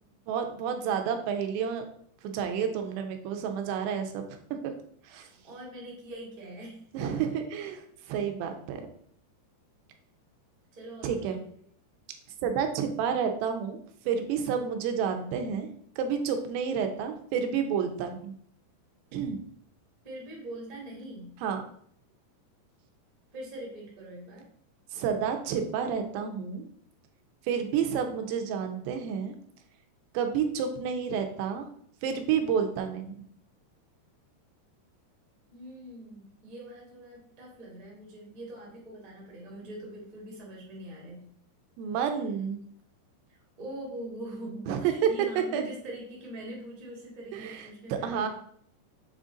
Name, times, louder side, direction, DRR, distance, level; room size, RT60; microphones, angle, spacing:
voice 1, 0.3-1.9 2.2-4.7 5.1-5.3 6.9-8.8 11.0-11.4 12.4-13.8 14.1-15.7 16.0-18.3 19.1-19.4 21.4-21.6 24.9-26.7 27.4-29.4 30.1-31.7 32.0-33.2 41.8-42.6 44.7-45.6 47.3-48.3, right 7 dB, 80° right, 5 dB, 2.8 m, -30 dB
voice 2, 5.0-6.8 10.7-11.4 20.0-21.4 23.3-24.4 35.5-41.3 43.3-48.3, right 1 dB, 25° right, -4 dB, 0.8 m, -43 dB
6.9 x 3.8 x 3.7 m, 0.63 s
omnidirectional pair, 4.8 m